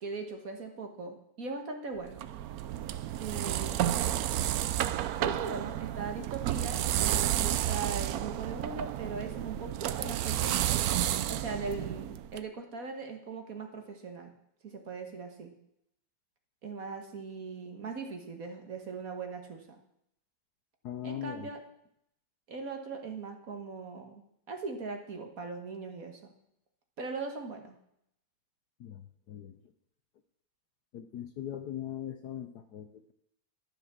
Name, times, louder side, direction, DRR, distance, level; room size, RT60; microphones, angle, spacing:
voice 1, 0.0-2.2 3.2-4.1 5.2-10.7 11.3-14.3 14.6-15.5 16.6-19.8 21.0-21.6 22.5-26.3 27.0-27.8, right 4 dB, 45° right, 5 dB, 1.7 m, -40 dB
sound 1, 2.0-12.4, right 12 dB, 90° right, 0.8 m, -31 dB
voice 2, 20.8-21.5 28.8-29.0 29.3-29.6 30.9-33.1, left 10 dB, 65° left, 8 dB, 1.1 m, -40 dB
12.5 x 7.4 x 7.3 m, 0.76 s
omnidirectional pair, 2.2 m